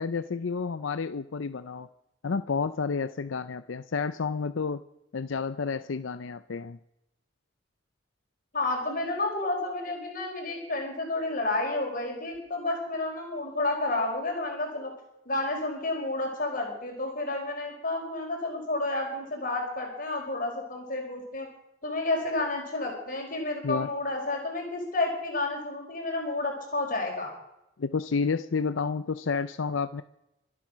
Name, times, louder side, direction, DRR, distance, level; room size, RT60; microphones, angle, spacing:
voice 1, 0.0-1.9 2.2-4.8 5.1-6.8 23.6-23.9 27.8-30.0, left 5 dB, 75° left, 12 dB, 0.6 m, -30 dB
voice 2, 8.5-14.9 15.3-21.5 21.8-27.3, left 2 dB, 45° left, 1 dB, 4.6 m, -30 dB
25.0 x 8.6 x 6.2 m, 0.86 s
head